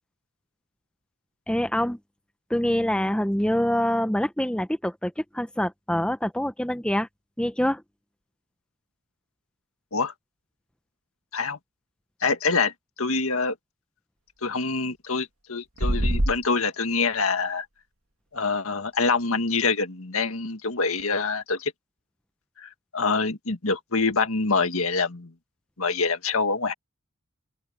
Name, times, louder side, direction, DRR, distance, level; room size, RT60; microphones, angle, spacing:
voice 1, 1.5-2.0 2.5-7.1 7.4-7.8, equal, 5° left, 0.8 m, -25 dB
voice 2, 12.2-12.7 13.0-13.6 14.4-17.7 18.3-21.7 22.6-25.3 25.8-26.7, left 4 dB, 80° left, 1.9 m, -25 dB
sound 1, 15.8-16.4, right 1 dB, 80° right, 2.1 m, -23 dB
open air
head